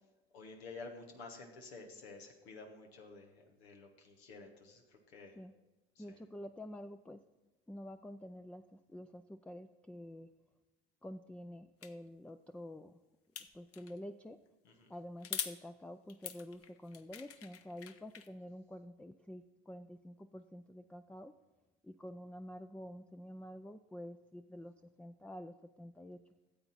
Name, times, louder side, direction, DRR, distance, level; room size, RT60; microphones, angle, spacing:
voice 1, 0.3-5.4 5.9-6.2 14.6-14.9, left 3 dB, 90° left, 3 dB, 1.3 m, -51 dB
voice 2, 6.0-7.2 7.7-10.3 11.0-12.9 13.5-14.4 14.9-21.3 21.8-26.2, left 1 dB, 5° left, 8 dB, 0.4 m, -48 dB
sound 1, 11.8-11.9 13.4-14.0 15.2-15.6 16.1-18.3, left 8 dB, 50° left, 0.9 m, -43 dB
13.5 x 7.8 x 4.1 m, 1.1 s
hypercardioid pair, 65°, 31 cm